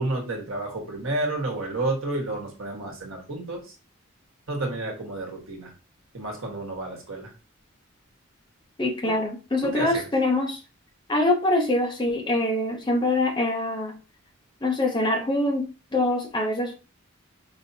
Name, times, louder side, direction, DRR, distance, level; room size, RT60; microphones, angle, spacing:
voice 1, 0.0-3.6 4.5-5.7 6.1-7.3 9.6-10.0, right 2 dB, 75° right, 1.2 m, -30 dB
voice 2, 8.8-10.6 11.1-14.0 14.6-15.7 15.9-16.7, left 2 dB, 20° left, 0.6 m, -24 dB
4.9 x 2.7 x 2.7 m
head